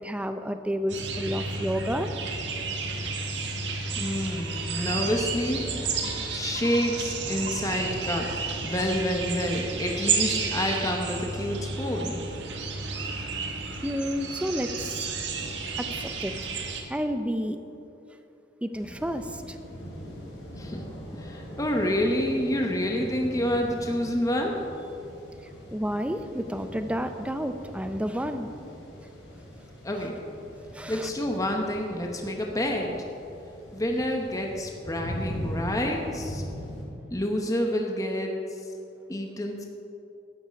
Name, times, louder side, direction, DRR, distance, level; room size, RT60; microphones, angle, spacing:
voice 1, 0.0-2.1 13.8-14.9 15.8-16.3 16.9-17.6 18.6-19.6 25.7-28.5 29.9-30.0 30.7-31.1, equal, 5° right, 8 dB, 0.6 m, -30 dB
sound 1, 0.9-16.8, right 4 dB, 75° right, 1.4 m, -31 dB
voice 2, 4.0-5.6 6.3-8.3 8.6-12.2 20.5-20.8 21.1-24.6 29.8-30.1 30.9-32.9 33.7-36.4 37.1-38.3 39.1-39.6, left 1 dB, 20° left, 1 dB, 0.9 m, -28 dB
sound 2, 18.7-36.8, equal, 85° left, 3.0 m, -41 dB
12.5 x 9.0 x 5.2 m, 2.7 s
head